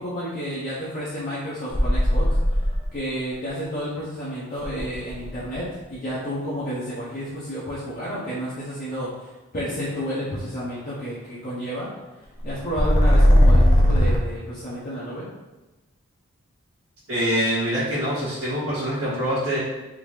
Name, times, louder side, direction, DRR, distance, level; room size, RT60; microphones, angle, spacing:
voice 1, 0.0-2.4 2.9-11.9 12.4-15.3, equal, 40° left, -10 dB, 0.8 m, -31 dB
sound 1, 1.7-3.0 4.6-5.5 12.5-14.2, equal, 25° left, 0.4 m, -17 dB
voice 2, 17.1-19.6, equal, 90° right, -13 dB, 1.3 m, -24 dB
3.6 x 2.7 x 3.1 m, 1.1 s
head